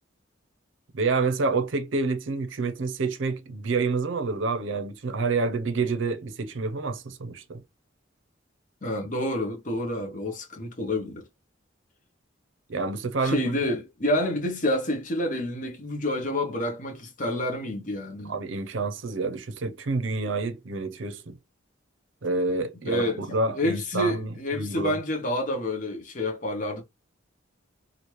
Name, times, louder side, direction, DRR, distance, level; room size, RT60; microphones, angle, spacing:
voice 1, 0.9-7.6 12.7-13.4 18.3-21.3 22.2-24.3 24.5-25.0, right 3 dB, 75° right, 0.5 m, -28 dB
voice 2, 8.8-11.2 13.2-18.3 22.9-23.2 23.5-26.8, left 1 dB, 40° left, 0.8 m, -28 dB
3.1 x 2.5 x 2.9 m
head